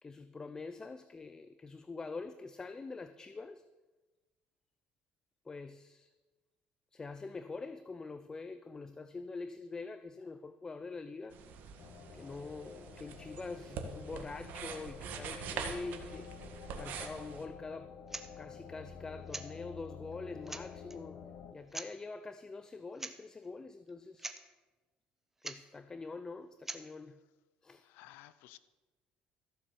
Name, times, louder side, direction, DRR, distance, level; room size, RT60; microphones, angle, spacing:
voice 1, 0.0-3.6 5.4-6.1 6.9-11.4 12.1-16.3 16.7-17.9 18.3-21.2 21.5-24.3 25.4-27.2 27.6-27.8, left 3 dB, 20° left, 0.5 m, -45 dB
sound 1, 11.3-17.5, right 6 dB, 65° right, 1.7 m, -44 dB
sound 2, 11.8-21.5, left 7 dB, 55° left, 1.2 m, -50 dB
sound 3, 18.1-18.3 19.3-19.5 20.1-20.2 20.5-21.0 21.7-21.9 23.0-23.2 23.4-23.5 23.9-24.0 24.2-24.4 25.4-25.6 26.6-26.8, right 2 dB, 10° right, 0.9 m, -43 dB
voice 2, 27.8-28.6, left 15 dB, 90° left, 0.7 m, -55 dB
14.5 x 7.2 x 7.0 m
cardioid pair, 120°, 3 cm